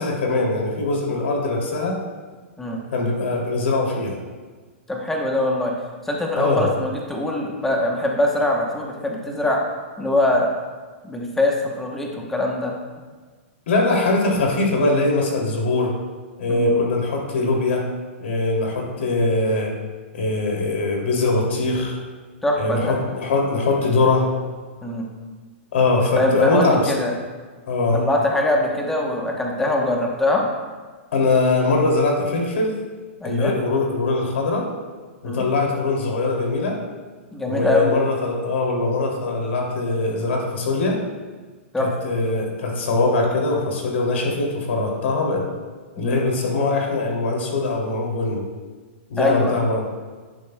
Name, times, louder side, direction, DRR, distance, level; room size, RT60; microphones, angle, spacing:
voice 1, 0.0-2.0 2.9-4.2 6.4-6.7 13.7-15.9 16.4-17.9 18.2-19.7 20.1-22.0 22.6-24.3 25.7-27.1 27.7-28.0 31.1-32.8 33.2-34.7 35.2-36.8 37.5-41.0 41.8-45.5 45.9-48.4 49.1-49.8, left 3 dB, 65° left, 0 dB, 2.6 m, -22 dB
voice 2, 4.9-5.7 6.0-9.6 10.0-10.5 11.0-12.7 16.5-16.7 22.4-22.9 24.8-25.1 26.2-27.1 27.9-30.4 33.2-33.5 35.2-35.4 37.3-37.9 41.7-41.9 46.0-46.2 49.2-49.5, left 1 dB, 5° left, 0 dB, 0.9 m, -22 dB
10.5 x 10.5 x 2.2 m, 1.4 s
hypercardioid pair, 170°, 7 cm